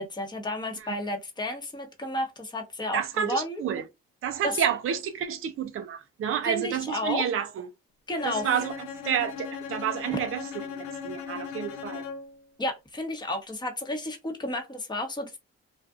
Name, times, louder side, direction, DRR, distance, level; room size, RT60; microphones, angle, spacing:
voice 1, 0.0-3.6 4.4-4.5 6.4-7.2 8.1-8.5 12.6-15.4, left 1 dB, 15° left, 0.9 m, -32 dB
voice 2, 2.9-3.8 4.2-7.7 8.2-12.1, right 9 dB, 45° right, 0.5 m, -30 dB
Bowed string instrument, 8.2-12.4, left 7 dB, 80° left, 0.7 m, -38 dB
2.4 x 2.4 x 2.4 m
supercardioid pair, 55°, 31 cm